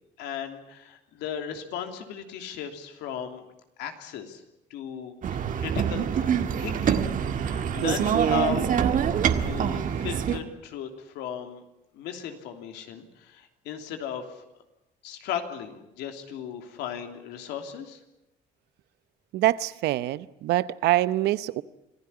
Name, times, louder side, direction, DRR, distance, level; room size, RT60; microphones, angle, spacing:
voice 1, 0.2-3.5 3.8-4.4 4.7-6.3 6.6-7.0 7.3-8.7 9.4-11.6 11.9-14.4 15.0-18.0, left 8 dB, 90° left, 3.1 m, -36 dB
sound 1, 5.2-10.4, right 8 dB, 50° right, 1.8 m, -25 dB
voice 2, 19.3-21.6, right 15 dB, 80° right, 0.9 m, -25 dB
26.0 x 15.5 x 9.9 m
cardioid pair, 110°, 17 cm